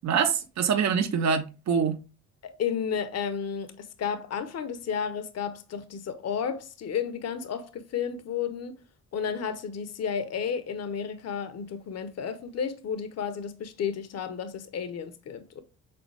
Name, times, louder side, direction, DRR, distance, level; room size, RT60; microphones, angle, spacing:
voice 1, 0.0-2.0, right 6 dB, 65° right, 1.1 m, -25 dB
voice 2, 2.4-8.8 9.1-15.6, left 7 dB, 55° left, 0.9 m, -32 dB
7.0 x 4.0 x 3.4 m
cardioid pair, 90°, 30 cm